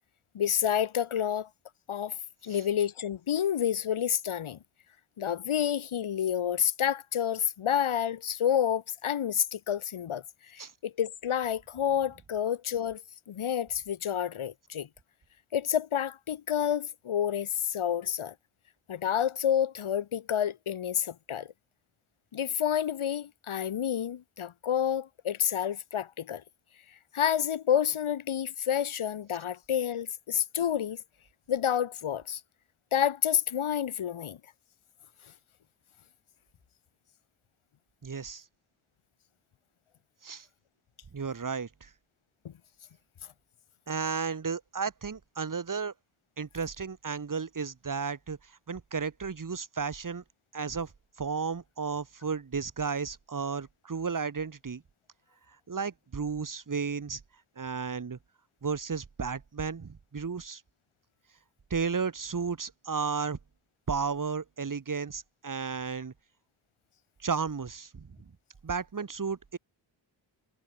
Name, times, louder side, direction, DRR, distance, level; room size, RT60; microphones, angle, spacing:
voice 1, 0.3-1.5 1.9-2.2 2.4-4.6 5.2-13.0 13.3-14.9 15.5-18.3 18.9-21.5 22.3-26.4 27.1-31.0 31.5-32.4 32.9-34.4, left 9 dB, 85° left, 3.0 m, -29 dB
voice 2, 38.0-38.4 40.2-40.5 41.1-41.9 43.9-45.9 46.4-50.2 50.5-50.9 51.2-54.8 55.7-57.2 57.6-58.2 58.6-60.6 61.7-63.4 63.9-66.1 67.2-68.2 68.6-69.6, right 5 dB, 40° right, 5.8 m, -33 dB
wide cardioid pair, 170°, 48 cm